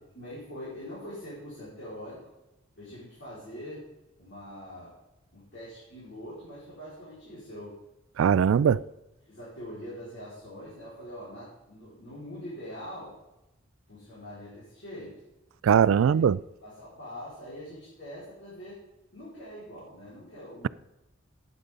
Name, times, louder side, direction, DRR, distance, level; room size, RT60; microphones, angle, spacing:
voice 1, 0.1-2.3 2.8-3.9 4.2-4.9 5.3-7.8 8.3-8.8 9.3-13.2 13.9-15.2 15.9-16.2 16.6-18.8 19.1-20.7, equal, 60° left, 4.7 m, -43 dB
voice 2, 8.2-8.8 15.6-16.4, right 7 dB, 90° right, 0.3 m, -20 dB
12.0 x 9.7 x 3.8 m
head